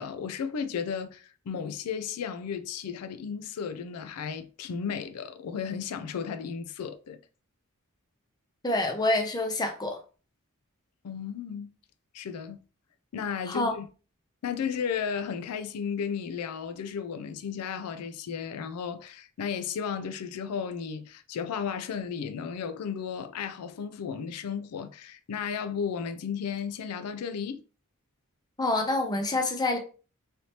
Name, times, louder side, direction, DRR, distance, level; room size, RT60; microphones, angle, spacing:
voice 1, 0.0-7.2 11.0-11.7 12.1-12.6 13.1-13.9 14.4-27.6, left 7 dB, 90° left, 0.4 m, -34 dB
voice 2, 8.6-10.0 13.5-13.7 28.6-29.8, left 2 dB, 20° left, 0.5 m, -27 dB
3.3 x 2.8 x 2.8 m
head